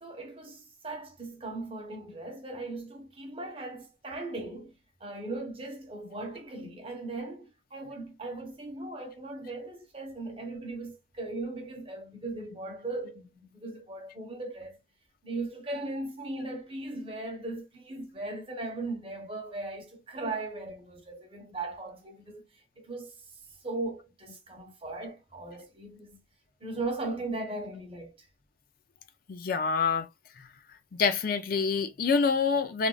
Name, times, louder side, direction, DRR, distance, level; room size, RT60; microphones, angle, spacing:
voice 1, 0.0-4.7 5.0-14.8 15.2-22.4 22.8-26.2 26.6-28.3, right 2 dB, 30° right, 1.0 m, -38 dB
voice 2, 29.3-30.1 30.4-30.5 31.0-32.9, left 5 dB, 45° left, 0.4 m, -26 dB
3.4 x 2.4 x 2.2 m
head